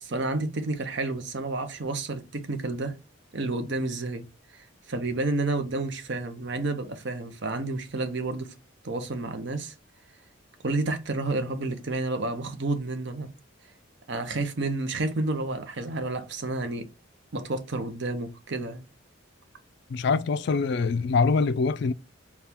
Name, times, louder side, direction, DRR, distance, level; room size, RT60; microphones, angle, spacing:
voice 1, 0.0-2.9 3.3-4.2 4.5-8.5 8.8-9.7 10.6-13.3 14.1-16.9 17.3-18.8, right 2 dB, 55° right, 0.7 m, -30 dB
voice 2, 19.9-21.9, left 4 dB, 55° left, 0.3 m, -24 dB
4.3 x 2.3 x 3.4 m
head